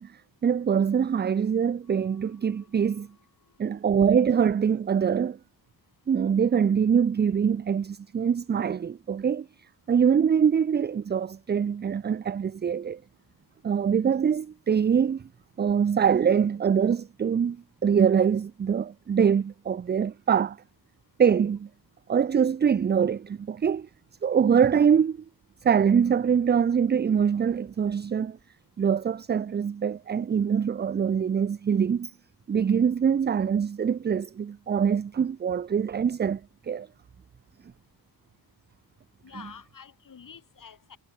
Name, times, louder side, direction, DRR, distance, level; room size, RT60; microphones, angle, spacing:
voice 1, 0.0-3.1 3.6-5.4 6.1-9.5 9.9-13.0 13.6-15.2 15.6-17.6 17.8-20.6 21.2-21.7 22.1-23.9 24.2-25.2 25.6-28.4 28.8-32.1 32.5-36.9, right 7 dB, 25° right, 0.4 m, -24 dB
voice 2, 1.8-3.6 39.2-41.0, left 7 dB, 50° left, 3.6 m, -50 dB
wide cardioid pair, 125°, 41 cm